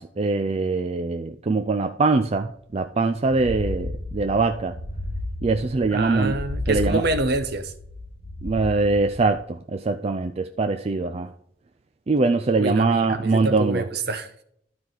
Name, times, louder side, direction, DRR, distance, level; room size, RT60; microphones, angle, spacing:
voice 1, 0.0-4.8 5.4-6.4 6.7-7.0 8.4-11.3 12.1-13.8, right 3 dB, 35° right, 0.4 m, -23 dB
sound 1, 3.3-9.3, left 1 dB, 35° left, 2.1 m, -33 dB
voice 2, 5.9-7.7 12.6-14.4, right 2 dB, 60° right, 0.9 m, -26 dB
12.5 x 4.7 x 3.9 m
head